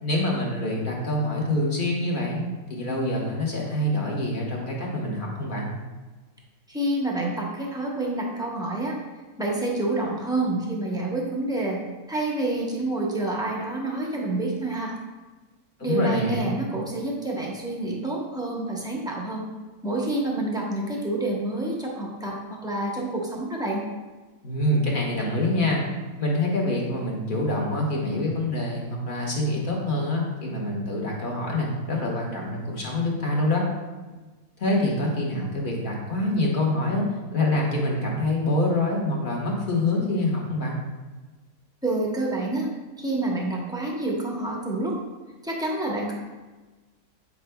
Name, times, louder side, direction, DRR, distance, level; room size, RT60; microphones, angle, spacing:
voice 1, 0.0-5.7 15.8-16.5 24.4-25.8 26.2-33.7 34.6-37.0 37.3-40.8, left 1 dB, 35° left, -2 dB, 1.2 m, -26 dB
voice 2, 6.7-8.9 9.4-11.8 12.1-14.9 15.8-19.4 19.8-23.8 41.8-42.7 43.0-45.0 45.4-46.1, right 2 dB, 5° right, -2 dB, 0.6 m, -28 dB
8.4 x 5.0 x 2.3 m, 1.2 s
omnidirectional pair, 1.7 m